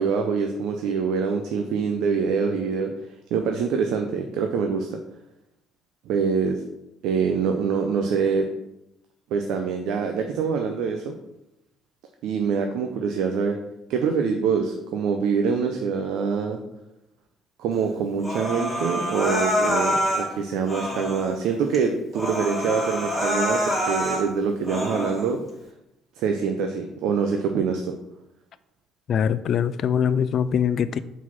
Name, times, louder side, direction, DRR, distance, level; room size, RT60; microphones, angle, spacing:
voice 1, 0.0-2.9 3.3-5.0 6.1-6.6 7.0-8.5 9.3-11.1 12.2-13.6 13.9-16.6 17.6-25.4 26.2-27.8, right 5 dB, 75° right, 0.6 m, -25 dB
Human voice, 18.2-20.3 20.7-21.3 21.7-21.8 22.1-24.2 24.6-25.2, equal, 10° right, 2.3 m, -26 dB
voice 2, 29.1-31.0, left 8 dB, 55° left, 0.3 m, -22 dB
4.7 x 4.0 x 5.5 m
supercardioid pair, 80°, 0 cm